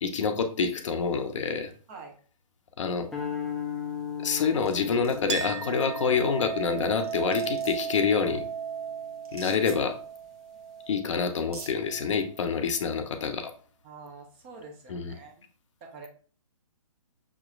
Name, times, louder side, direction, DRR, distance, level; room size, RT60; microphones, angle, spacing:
voice 1, 0.0-1.7 2.8-3.1 4.2-8.4 9.3-10.0 10.9-13.5 14.9-15.1, left 5 dB, 55° left, 6 dB, 0.7 m, -27 dB
sound 1, 3.1-9.5, left 8 dB, 5° left, 0.5 m, -38 dB
sound 2, 4.3-4.8 5.0-5.5 6.7-6.8 7.0-7.9 9.2-9.8 10.9-11.0 11.4-11.7, right 3 dB, 80° right, 1.3 m, -45 dB
Chink clink, 5.3-12.3, right 8 dB, 55° right, 0.4 m, -36 dB
voice 2, 13.8-15.3 15.8-16.1, right 4 dB, 25° right, 2 dB, 0.8 m, -45 dB
5.9 x 3.0 x 2.4 m, 0.42 s
hypercardioid pair, 145°, 19 cm